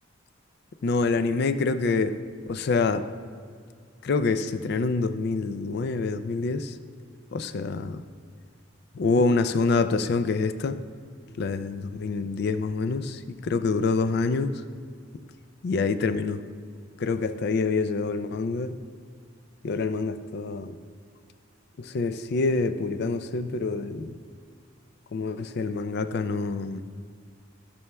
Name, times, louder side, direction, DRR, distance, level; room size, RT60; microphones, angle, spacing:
voice 1, 0.8-2.2 2.5-3.0 4.0-6.7 7.3-8.0 9.0-10.8 11.4-14.5 15.6-16.4 17.0-18.7 19.6-20.8 21.8-24.1 25.1-26.8, left 4 dB, 55° left, 10 dB, 0.4 m, -26 dB
14.0 x 6.8 x 2.3 m, 2.1 s
head